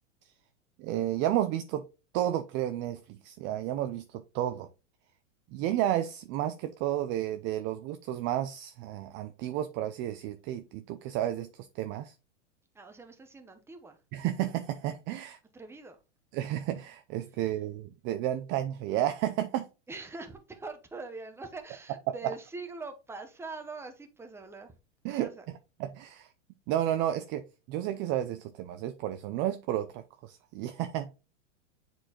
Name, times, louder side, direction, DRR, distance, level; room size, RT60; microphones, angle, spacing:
voice 1, 0.8-1.8 2.1-4.7 5.5-12.1 14.1-15.4 16.3-19.7 25.0-25.3 25.8-26.3 26.7-31.1, right 12 dB, 30° right, 0.5 m, -32 dB
voice 2, 12.7-14.0 15.5-16.0 19.9-24.7 25.1-25.4, right 3 dB, 5° right, 0.9 m, -43 dB
7.6 x 4.4 x 2.9 m
hypercardioid pair, 110°, 37 cm